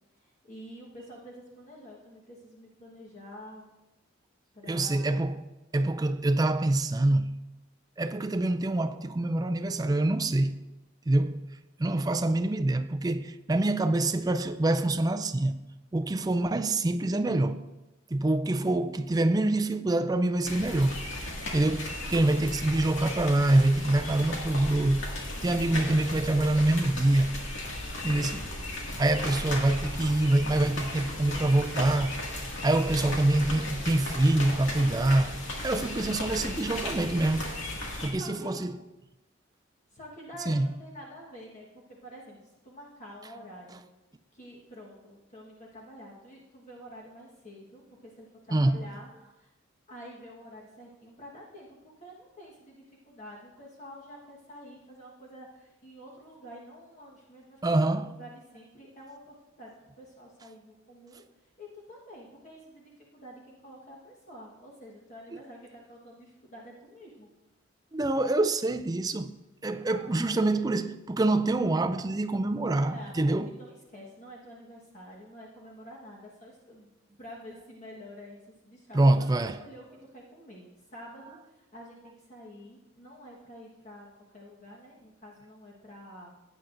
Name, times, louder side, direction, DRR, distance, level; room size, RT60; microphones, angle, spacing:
voice 1, 0.1-3.7 4.5-5.2 38.1-38.7 39.9-43.9 44.3-49.1 49.4-49.5 49.9-61.2 61.6-67.3 69.7-70.7 72.8-76.9 77.2-79.3 79.6-79.8 80.1-84.1 84.3-86.3, equal, 35° left, 1.3 m, -48 dB
voice 2, 4.7-5.4 5.7-7.4 8.0-10.6 11.1-11.4 11.8-15.6 15.9-17.6 18.1-21.0 21.5-25.1 25.4-27.4 28.0-28.5 29.0-32.1 32.6-35.4 35.6-37.6 38.0-38.7 40.5-40.7 48.5-48.8 57.6-58.1 67.9-69.4 69.6-73.5 78.9-79.6, right 2 dB, 20° right, 0.4 m, -25 dB
sound 1, 20.4-38.1, left 1 dB, 65° left, 2.1 m, -36 dB
16.0 x 9.2 x 2.6 m
head